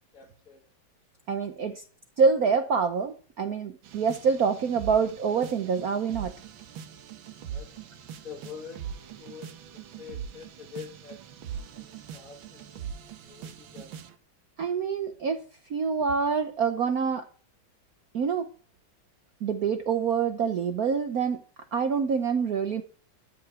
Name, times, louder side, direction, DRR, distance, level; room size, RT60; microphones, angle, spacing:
voice 1, 0.1-0.7 7.5-7.9 8.2-8.9 9.1-11.2 11.8-12.9 13.2-14.0, left 7 dB, 40° left, 1 dB, 2.1 m, -46 dB
voice 2, 1.3-1.8 2.2-6.3 14.6-15.4 15.7-17.2 18.1-18.5 19.4-21.4 21.7-22.8, right 6 dB, 60° right, 7 dB, 1.1 m, -26 dB
sound 1, 3.8-14.1, right 8 dB, 75° right, 1.7 m, -42 dB
13.5 x 5.8 x 7.7 m, 0.42 s
omnidirectional pair, 2.3 m